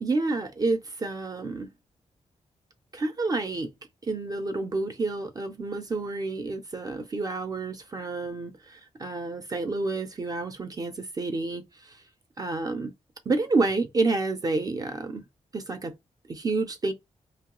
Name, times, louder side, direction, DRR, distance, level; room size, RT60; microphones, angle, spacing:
voice 1, 0.0-1.7 2.9-3.7 4.0-12.0 12.4-12.9 13.3-15.2 15.5-15.9 16.3-16.9, right 3 dB, 30° right, 0.4 m, -29 dB
3.0 x 2.2 x 2.9 m
wide cardioid pair, 155°, 13 cm